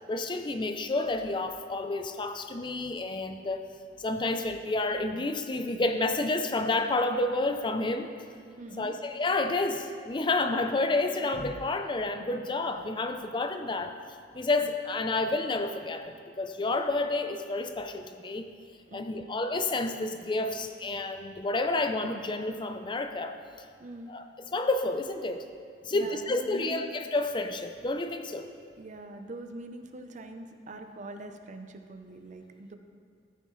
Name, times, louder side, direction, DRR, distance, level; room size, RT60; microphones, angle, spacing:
voice 1, 0.1-3.6 4.0-8.1 8.8-13.9 14.3-18.5 18.9-23.4 24.1-24.2 24.5-25.5 25.8-28.5, left 2 dB, 25° left, 7 dB, 0.5 m, -30 dB
voice 2, 8.6-8.9 18.9-19.2 23.8-24.1 25.9-26.9 28.8-32.7, right 2 dB, 45° right, 7 dB, 0.6 m, -43 dB
13.5 x 9.2 x 3.1 m, 2.2 s
head